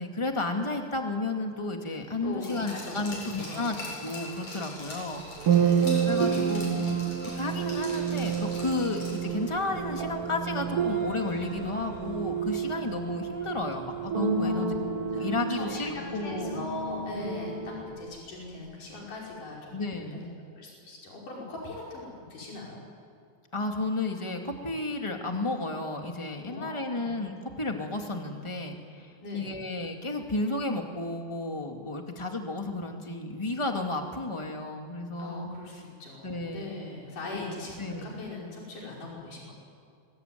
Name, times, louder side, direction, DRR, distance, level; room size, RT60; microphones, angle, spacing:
voice 1, 0.0-3.8 4.0-5.5 6.1-7.0 7.2-14.7 15.2-16.7 19.7-20.3 23.5-35.5 36.2-36.7 37.3-37.4 37.8-38.3, left 2 dB, 10° left, 3 dB, 1.9 m, -32 dB
voice 2, 2.2-3.1 3.4-3.7 5.6-6.1 6.5-7.1 14.4-14.7 15.1-20.3 20.6-22.8 26.5-27.2 29.2-29.5 35.2-39.5, left 2 dB, 85° left, -3 dB, 6.8 m, -40 dB
Glass, 2.4-9.4 9.7-9.8, left 1 dB, 60° left, 9.1 m, -42 dB
Vehicle, 4.4-19.9, right 2 dB, 70° right, 5.8 m, -51 dB
sound 1, 5.4-18.0, right 6 dB, 50° right, 2.9 m, -30 dB
27.0 x 22.0 x 9.5 m, 2.4 s
omnidirectional pair, 3.6 m